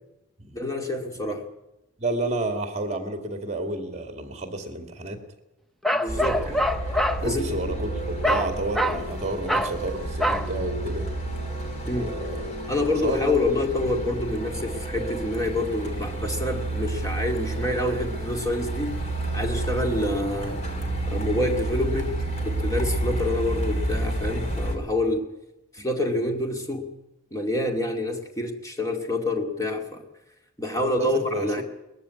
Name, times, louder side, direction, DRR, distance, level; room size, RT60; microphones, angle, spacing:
voice 1, 0.5-1.4 5.9-6.6 6.9-7.8 11.9-12.1 12.7-19.0 19.3-20.6 21.1-25.3 25.7-26.9 27.3-30.0 30.6-31.6, left 1 dB, 15° left, 3 dB, 2.2 m, -27 dB
voice 2, 2.0-5.2 6.1-6.6 7.2-11.1 12.0-12.5 12.8-13.4 30.8-31.6, right 2 dB, 35° right, 6 dB, 2.3 m, -31 dB
Bark, 5.8-7.2 8.2-8.5 8.7-9.0 9.5-9.8 10.2-10.5, equal, ahead, 0.8 m, -24 dB
Truck, 6.1-24.8, right 1 dB, 35° left, 2.8 m, -30 dB
20.5 x 14.5 x 9.7 m, 0.94 s
head